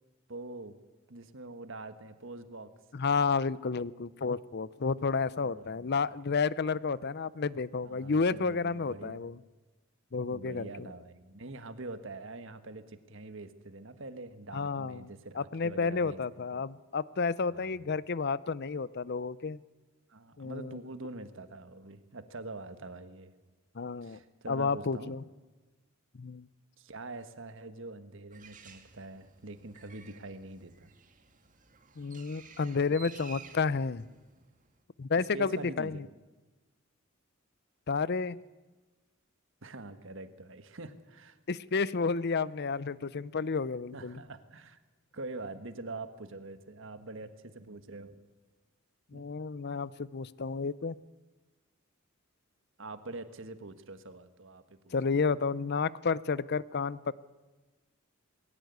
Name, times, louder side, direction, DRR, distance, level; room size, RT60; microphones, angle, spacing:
voice 1, 0.3-0.7 1.1-2.7 5.4-5.9 7.8-9.2 10.3-16.2 16.5-16.6 17.5-17.9 20.1-23.3 24.0-25.1 26.8-30.9 35.3-36.0 39.6-41.4 43.9-44.8 45.1-48.2 49.1-49.3 52.8-54.9, right 2 dB, 65° right, 10 dB, 1.5 m, -44 dB
voice 2, 2.9-9.4 10.1-10.9 14.5-15.1 15.3-19.6 20.4-20.8 23.7-24.2 24.5-25.2 26.1-26.5 32.0-34.1 35.0-36.1 37.9-38.4 41.5-44.2 49.1-51.0 54.9-57.1, left 4 dB, 50° left, 19 dB, 0.6 m, -31 dB
Bird, 28.3-34.8, right 6 dB, 40° right, 1.9 m, -54 dB
20.5 x 17.5 x 9.4 m, 1.2 s
head